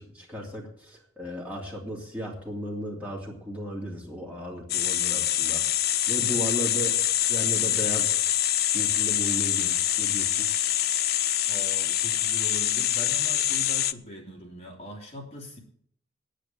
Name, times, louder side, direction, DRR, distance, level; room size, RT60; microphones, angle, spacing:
voice 1, 0.0-5.6 6.1-7.0 7.2-8.2 8.7-10.5, equal, 5° right, -3 dB, 2.9 m, -35 dB
sound 1, 4.7-13.9, left 12 dB, 50° left, 0.5 m, -25 dB
voice 2, 11.5-15.6, left 1 dB, 30° left, -1 dB, 2.8 m, -41 dB
9.6 x 9.2 x 9.1 m, 0.62 s
head